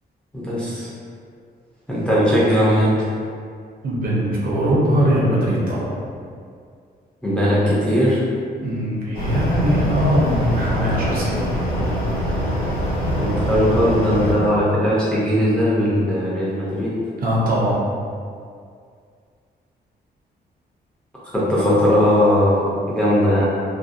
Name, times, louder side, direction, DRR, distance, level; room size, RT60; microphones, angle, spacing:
voice 1, 0.3-0.9 1.9-3.1 7.2-8.2 13.2-16.9 21.3-23.4, equal, 5° left, -9 dB, 0.4 m, -18 dB
voice 2, 3.8-5.9 8.6-11.4 17.2-17.7, equal, 55° right, -6 dB, 0.6 m, -20 dB
sound 1, 9.1-14.3, equal, 60° left, 0.7 m, -23 dB
2.5 x 2.1 x 2.4 m, 2.2 s
wide cardioid pair, 175°, 17 cm